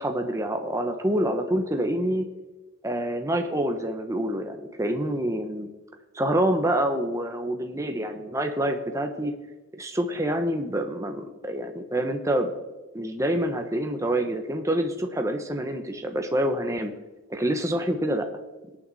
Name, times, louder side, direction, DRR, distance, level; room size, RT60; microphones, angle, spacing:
voice 1, 0.0-2.3 2.8-5.7 6.1-9.3 9.8-12.5 12.9-16.9 17.3-18.3, right 1 dB, 15° right, 5 dB, 1.1 m, -27 dB
24.5 x 9.1 x 4.3 m, 1.1 s
head